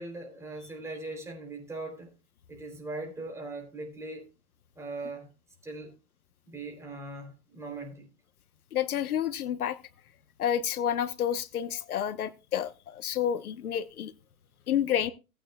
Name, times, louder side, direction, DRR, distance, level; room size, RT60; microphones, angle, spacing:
voice 1, 0.0-2.1 2.5-4.3 4.7-5.3 5.6-5.9 6.4-8.1, right 2 dB, 5° right, 3.2 m, -40 dB
voice 2, 8.7-9.8 10.4-14.1 14.7-15.1, left 9 dB, 75° left, 1.1 m, -29 dB
18.0 x 9.0 x 2.3 m
hypercardioid pair, 145°, 44 cm